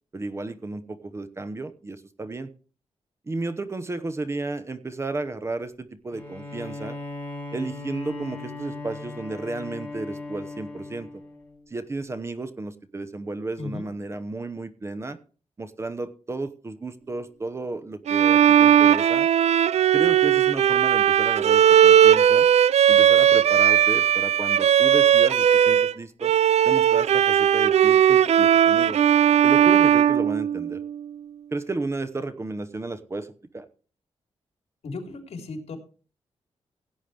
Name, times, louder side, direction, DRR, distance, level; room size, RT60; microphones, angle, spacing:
voice 1, 0.1-2.5 3.3-7.0 7.5-11.1 11.7-15.2 15.6-19.3 19.9-22.5 22.9-26.3 26.6-29.0 29.4-30.8 31.5-33.7, right 2 dB, 25° right, 12 dB, 0.9 m, -33 dB
Bowed string instrument, 6.1-11.6, left 3 dB, 15° left, 4.4 m, -38 dB
Bowed string instrument 2, 18.1-25.9 26.2-31.0, right 9 dB, 80° right, 0.4 m, -18 dB
voice 2, 34.8-35.8, left 3 dB, 70° left, 4 dB, 3.5 m, -35 dB
17.0 x 9.4 x 3.4 m, 0.38 s
wide cardioid pair, 140°, 11 cm